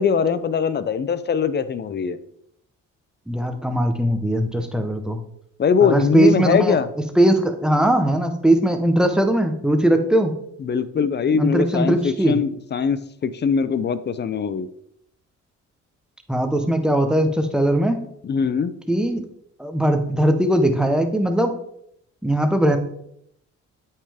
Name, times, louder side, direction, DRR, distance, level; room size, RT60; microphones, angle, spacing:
voice 1, 0.0-2.2 5.6-6.9 10.6-14.7 18.2-18.7, left 6 dB, 35° left, 14 dB, 0.5 m, -21 dB
voice 2, 3.3-5.2 5.8-6.8 7.2-10.3 11.4-12.4 16.3-18.0 18.9-19.2 19.6-21.5 22.2-22.8, right 1 dB, 5° right, 6 dB, 1.0 m, -19 dB
8.3 x 5.6 x 3.5 m, 0.73 s
cardioid pair, 90°, 30 cm